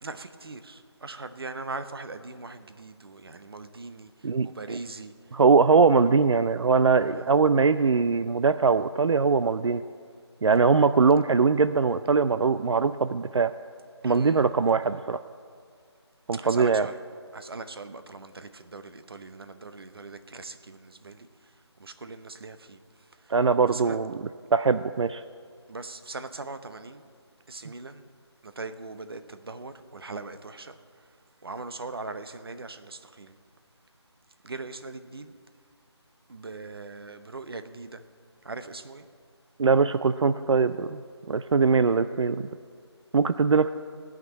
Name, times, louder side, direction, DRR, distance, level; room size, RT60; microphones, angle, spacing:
voice 1, 0.0-4.1 4.4-5.1 7.0-7.2 14.0-14.4 16.3-16.9 17.3-21.3 21.8-22.8 23.2-23.3 23.7-24.0 25.7-27.0 27.5-28.0 28.4-30.8 31.4-33.3 34.4-35.3 36.3-38.0 38.4-39.0, right 3 dB, 55° right, 10 dB, 0.8 m, -40 dB
voice 2, 4.2-4.8 5.3-9.8 10.4-13.5 14.0-15.2 16.3-16.9 23.3-24.2 24.5-25.2 39.6-41.0 41.3-42.5 43.1-43.7, right 5 dB, 85° right, 12 dB, 0.4 m, -22 dB
16.5 x 6.0 x 8.5 m, 2.1 s
figure-of-eight pair, 175°, 15 cm